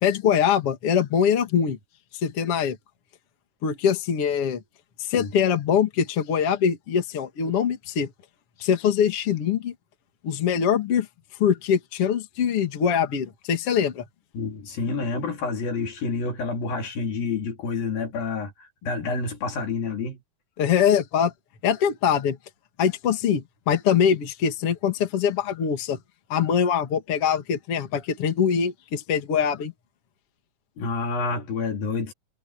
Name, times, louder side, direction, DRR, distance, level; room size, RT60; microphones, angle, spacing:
voice 1, 0.0-1.8 2.2-2.8 3.6-4.6 5.1-8.1 8.6-9.7 10.2-11.1 11.4-14.0 20.6-21.3 21.6-22.4 22.8-26.0 26.3-29.7, left 8 dB, 45° left, 2.9 m, -23 dB
voice 2, 14.3-20.2 30.8-32.1, left 4 dB, 80° left, 5.4 m, -28 dB
omnidirectional pair, 4.0 m